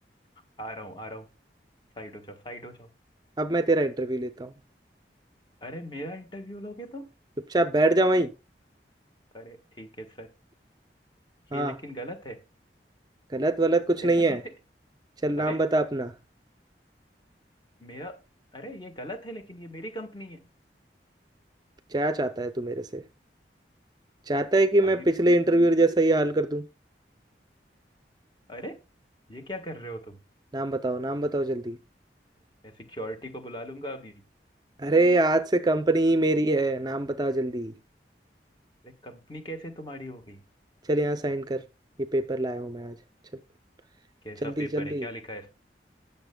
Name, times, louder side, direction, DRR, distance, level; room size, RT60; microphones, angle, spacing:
voice 1, 0.6-1.3 2.0-2.9 5.6-7.1 9.3-10.3 11.5-12.4 14.0-14.4 15.4-15.6 17.8-18.2 18.5-20.4 25.0-25.1 28.5-28.8 29.3-30.2 32.6-34.2 38.8-40.4 44.2-45.6, equal, 25° left, 1.3 m, -39 dB
voice 2, 3.4-4.5 7.5-8.3 11.5-11.7 13.3-14.4 15.2-16.1 21.9-23.0 24.3-26.7 30.5-31.8 34.8-37.7 40.8-41.6 42.0-43.0 44.4-45.1, right 2 dB, 25° right, 0.5 m, -24 dB
19.5 x 6.9 x 2.2 m
head